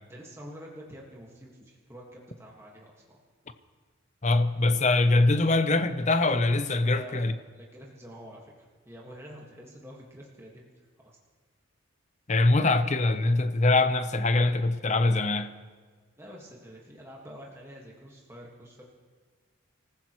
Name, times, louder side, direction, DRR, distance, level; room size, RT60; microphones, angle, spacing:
voice 1, 0.1-3.2 6.8-11.2 16.2-18.9, equal, 10° right, 1.7 m, -47 dB
voice 2, 4.2-7.3 12.3-15.5, left 2 dB, 35° left, 0.6 m, -23 dB
26.5 x 14.5 x 3.1 m
head